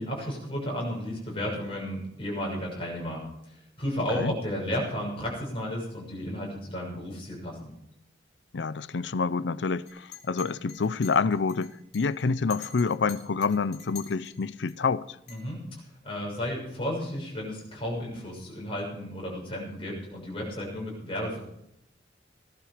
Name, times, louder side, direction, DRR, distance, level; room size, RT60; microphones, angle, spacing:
voice 1, 0.0-7.7 15.3-15.6 16.0-21.4, equal, 30° left, 6.5 m, -33 dB
voice 2, 8.5-15.2, left 4 dB, 80° left, 0.5 m, -27 dB
Chink clink, 9.9-14.7 15.3-15.5, left 8 dB, 65° left, 4.7 m, -46 dB
17.5 x 11.5 x 5.0 m
head